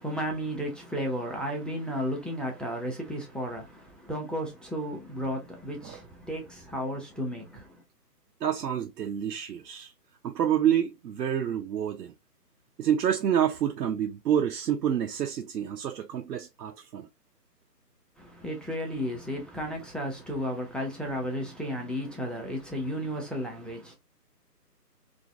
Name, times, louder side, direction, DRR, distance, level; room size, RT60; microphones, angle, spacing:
voice 1, 0.0-7.8 18.2-23.9, equal, ahead, 0.4 m, -33 dB
voice 2, 8.4-9.9 10.2-12.1 12.8-17.1, right 9 dB, 80° right, 0.5 m, -28 dB
2.5 x 2.4 x 2.4 m
hypercardioid pair, 180°, 49 cm